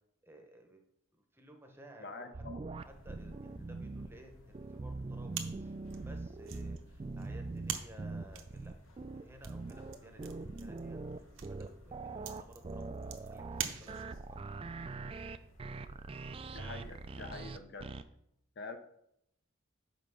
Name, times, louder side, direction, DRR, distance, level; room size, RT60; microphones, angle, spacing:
voice 1, 0.2-0.8 1.3-2.4 2.8-8.7 9.1-12.9 13.2-14.1, right 1 dB, 10° right, 3 dB, 0.9 m, -56 dB
voice 2, 2.0-2.6 16.5-17.9 18.6-18.8, left 3 dB, 55° left, 7 dB, 0.7 m, -45 dB
sound 1, 2.3-4.1 4.5-18.0, right 3 dB, 25° right, 0.3 m, -42 dB
sound 2, 2.8-17.4, left 1 dB, 80° left, 1.3 m, -58 dB
sound 3, 5.3-14.4, right 9 dB, 70° right, 0.8 m, -45 dB
5.5 x 5.1 x 6.2 m, 0.77 s
head